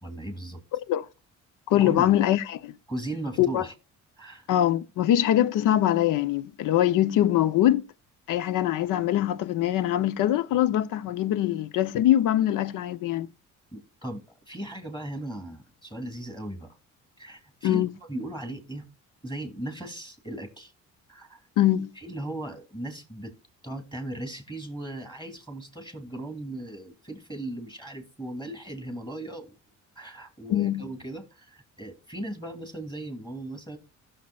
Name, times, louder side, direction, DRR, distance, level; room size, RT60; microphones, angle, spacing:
voice 1, 0.0-0.6 1.8-2.1 2.9-3.7 4.2-4.5 13.7-16.8 17.2-17.8 18.1-18.8 19.2-20.7 21.1-21.4 22.0-23.3 23.6-29.5 29.9-33.8, right 1 dB, 15° left, 2.8 m, -37 dB
voice 2, 0.7-1.1 1.7-2.7 3.4-3.6 4.5-7.8 8.3-13.3 17.6-17.9 21.6-21.9 30.5-30.9, left 12 dB, 75° left, 0.7 m, -23 dB
16.0 x 6.4 x 2.3 m
cardioid pair, 90°, 32 cm